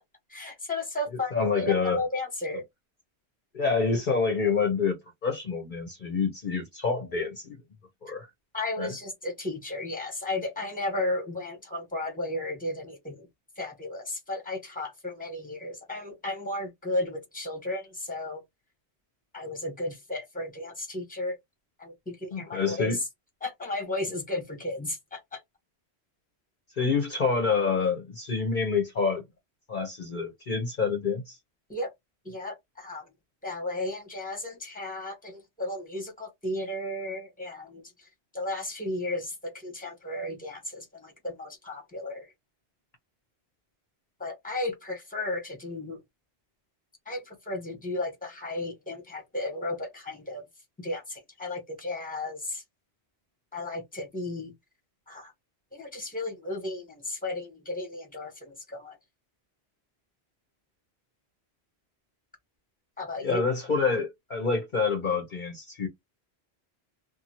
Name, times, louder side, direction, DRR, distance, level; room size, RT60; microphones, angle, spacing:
voice 1, 0.3-2.6 8.5-13.3 13.6-18.4 19.3-21.4 21.8-23.0 23.4-25.4 31.7-31.9 32.2-33.1 33.4-42.3 44.2-46.0 47.0-50.4 50.8-52.6 53.5-54.5 55.1-55.3 55.7-59.0 63.0-63.4, left 2 dB, 10° left, 1.1 m, -34 dB
voice 2, 1.3-2.0 3.5-5.0 5.2-7.6 8.0-8.3 8.8-8.9 22.3-23.0 26.8-29.2 29.7-31.4 63.2-65.9, left 5 dB, 50° left, 0.8 m, -27 dB
2.6 x 2.4 x 2.8 m
omnidirectional pair, 1.1 m